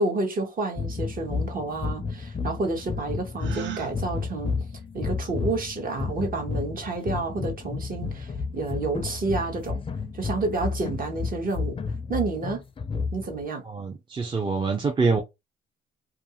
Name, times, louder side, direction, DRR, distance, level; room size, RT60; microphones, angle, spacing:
voice 1, 0.0-4.5 4.9-9.8 10.1-11.8 12.1-12.6 13.1-13.6, right 3 dB, 45° right, 1.0 m, -29 dB
sound 1, 0.7-13.4, left 4 dB, 25° left, 0.4 m, -32 dB
Gasp, 3.4-3.9, right 11 dB, 65° right, 0.6 m, -35 dB
voice 2, 13.6-15.2, right 4 dB, 25° right, 0.5 m, -25 dB
2.5 x 2.4 x 2.8 m
cardioid pair, 90°, 20 cm